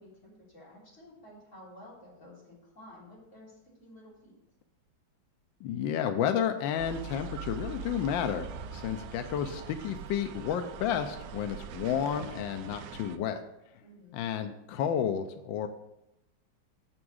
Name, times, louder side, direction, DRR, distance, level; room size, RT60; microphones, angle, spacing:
voice 1, 0.0-4.4 13.8-14.2, left 1 dB, 35° left, -7 dB, 3.9 m, -52 dB
voice 2, 5.6-8.5 8.7-13.4 14.1-15.7, left 8 dB, 75° left, 7 dB, 1.3 m, -31 dB
sound 1, 6.8-13.2, right 6 dB, 80° right, 1.4 m, -42 dB
7.0 x 6.2 x 6.3 m, 0.88 s
omnidirectional pair, 2.2 m